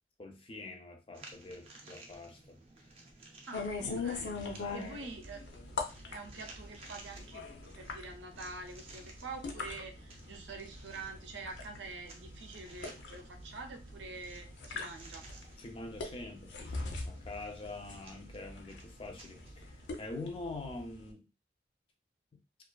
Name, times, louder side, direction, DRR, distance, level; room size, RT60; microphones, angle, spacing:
voice 1, 0.2-2.6 3.8-5.1 15.6-21.3, left 2 dB, 30° left, 0.4 m, -45 dB
sound 1, 1.1-19.9, right 2 dB, 35° right, 0.4 m, -56 dB
sound 2, 3.5-21.1, left 4 dB, 85° left, 0.5 m, -42 dB
voice 2, 3.5-4.3 4.7-7.5 7.8-15.3, right 3 dB, 90° right, 0.5 m, -46 dB
2.4 x 2.3 x 2.2 m
head